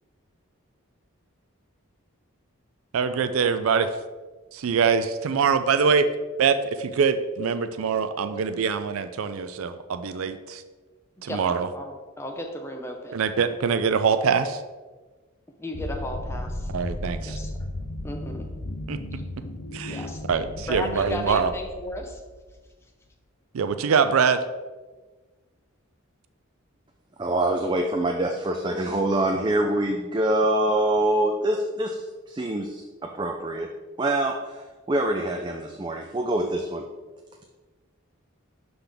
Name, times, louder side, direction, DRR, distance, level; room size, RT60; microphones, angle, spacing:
voice 1, 2.9-3.9 4.5-6.0 6.4-10.6 11.2-11.7 13.1-14.6 16.7-17.4 18.9-19.0 19.7-20.0 20.3-21.5 23.5-24.4, right 6 dB, 80° right, 10 dB, 0.4 m, -23 dB
voice 2, 11.7-13.2 15.6-16.7 17.3-17.5 18.0-18.5 19.9-20.2 20.7-22.2, equal, 10° left, 2 dB, 0.7 m, -35 dB
sound 1, 15.7-22.5, left 1 dB, 80° left, 0.8 m, -35 dB
voice 3, 27.2-33.7 34.0-34.6 34.9-36.9, right 1 dB, 20° right, 2 dB, 0.4 m, -25 dB
11.5 x 4.0 x 3.4 m, 1.3 s
head